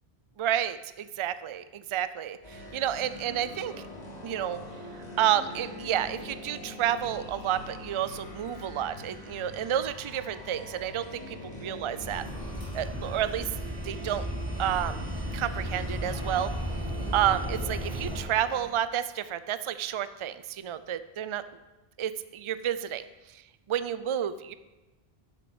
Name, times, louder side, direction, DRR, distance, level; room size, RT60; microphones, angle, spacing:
voice 1, 0.4-3.7 4.2-4.6 5.2-12.2 12.7-13.5 13.8-14.2 14.6-15.0 15.3-16.5 17.1-21.4 22.0-23.0 23.7-24.5, right 10 dB, 50° right, 13 dB, 0.3 m, -30 dB
sound 1, 2.4-18.7, left 1 dB, 40° left, 2.1 m, -44 dB
sound 2, 12.0-18.2, equal, 30° right, 2.6 m, -34 dB
8.1 x 7.6 x 7.1 m, 1.1 s
omnidirectional pair, 1.0 m